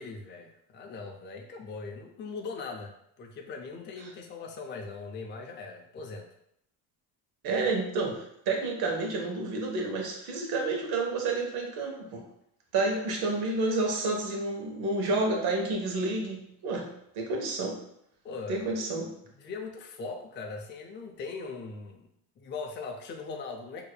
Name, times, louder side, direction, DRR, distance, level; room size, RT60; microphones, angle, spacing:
voice 1, 0.0-6.3 12.8-13.0 18.2-18.9 19.3-22.1 22.4-23.8, left 4 dB, 25° left, 2 dB, 0.5 m, -40 dB
voice 2, 7.4-12.2 12.7-16.9 17.1-17.8 18.5-19.1, right 3 dB, 60° right, 1 dB, 1.2 m, -30 dB
4.8 x 2.9 x 2.2 m, 0.74 s
supercardioid pair, 90°, 43 cm